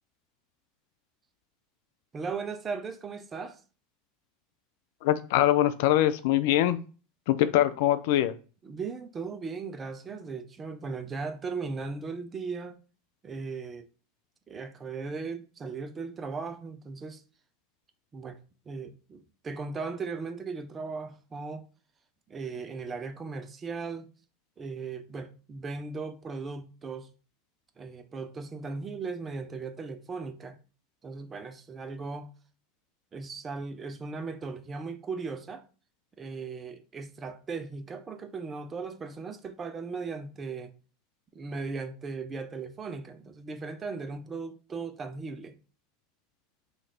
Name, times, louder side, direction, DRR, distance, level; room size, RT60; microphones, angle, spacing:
voice 1, 2.1-3.6 8.6-12.8 13.2-13.9 14.5-17.2 18.1-18.4 18.7-21.6 22.3-24.1 24.6-27.1 27.8-30.6 31.0-32.3 33.1-35.6 36.2-40.7 41.3-45.6, right 4 dB, 25° right, 0.5 m, -37 dB
voice 2, 5.0-6.8 7.3-8.3, left 13 dB, 65° left, 0.3 m, -23 dB
3.0 x 2.5 x 4.3 m
hypercardioid pair, 85°, 0 cm